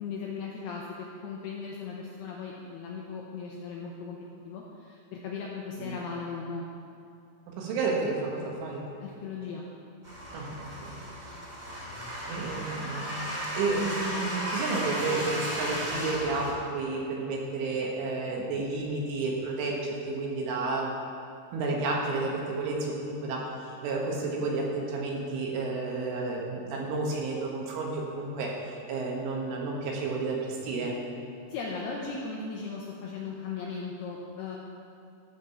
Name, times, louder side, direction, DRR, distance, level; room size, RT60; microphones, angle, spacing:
voice 1, 0.0-4.2 4.4-6.6 9.0-9.6 31.5-34.6, left 5 dB, 80° left, -2 dB, 2.3 m, -37 dB
voice 2, 7.5-8.9 10.3-11.0 12.3-13.0 13.6-20.9 21.5-23.5 23.8-28.5 28.9-31.0, right 3 dB, 80° right, -2 dB, 4.0 m, -31 dB
sound 1, 10.0-16.5, equal, 15° right, 2.0 m, -34 dB
14.0 x 5.1 x 7.0 m, 2.6 s
omnidirectional pair, 5.6 m